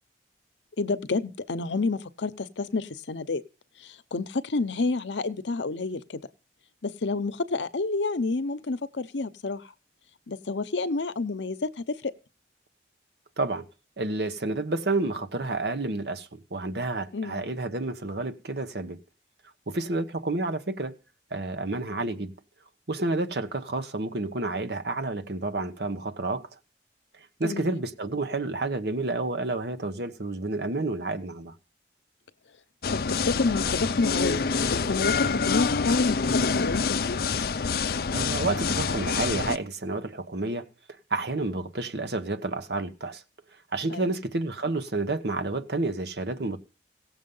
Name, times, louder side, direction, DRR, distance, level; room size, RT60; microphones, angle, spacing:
voice 1, 0.8-3.4 3.8-6.2 6.8-9.6 10.3-12.1 17.1-17.4 27.4-27.8 32.9-34.4 34.7-37.2 43.9-44.1, left 3 dB, 90° left, 0.8 m, -29 dB
voice 2, 14.0-19.0 19.7-20.9 21.3-22.3 22.9-26.5 27.4-31.5 38.1-40.7 41.1-43.2 43.7-46.6, right 2 dB, 65° right, 1.1 m, -30 dB
sound 1, 32.8-39.6, left 5 dB, 55° left, 0.5 m, -26 dB
16.5 x 7.3 x 5.5 m
head